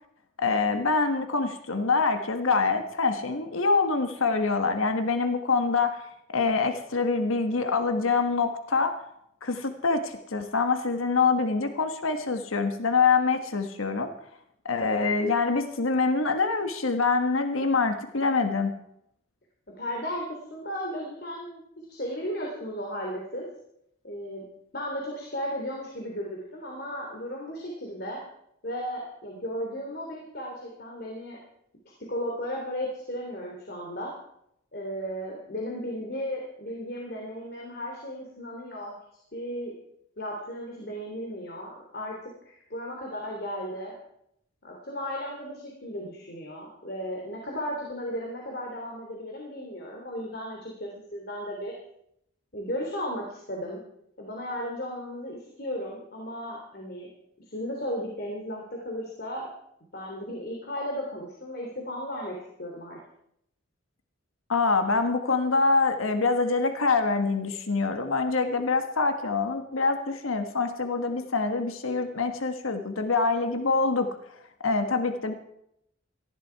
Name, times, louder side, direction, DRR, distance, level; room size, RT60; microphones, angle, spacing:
voice 1, 0.4-6.0 6.3-8.9 9.4-14.1 14.6-18.7 64.5-74.1 74.6-75.3, left 4 dB, 85° left, 7 dB, 1.4 m, -25 dB
voice 2, 19.8-20.2 20.5-21.6 21.9-23.4 24.0-24.4 24.7-28.2 28.6-31.4 32.1-34.1 34.7-38.9 39.3-39.7 40.2-42.1 42.4-43.9 44.6-51.7 52.5-53.8 54.2-57.1 57.5-59.5 59.9-63.0, equal, 50° left, -1 dB, 3.3 m, -35 dB
18.5 x 15.0 x 4.7 m, 0.75 s
head